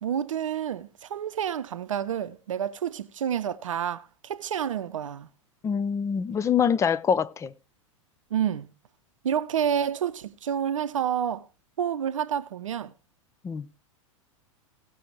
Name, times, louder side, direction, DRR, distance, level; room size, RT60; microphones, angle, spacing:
voice 1, 0.0-5.3 8.3-8.7 9.2-11.5 11.8-12.9, right 9 dB, 70° right, 0.7 m, -29 dB
voice 2, 5.6-7.5 13.4-13.7, left 7 dB, 15° left, 0.5 m, -25 dB
16.5 x 6.3 x 4.5 m
figure-of-eight pair, 95°, 17 cm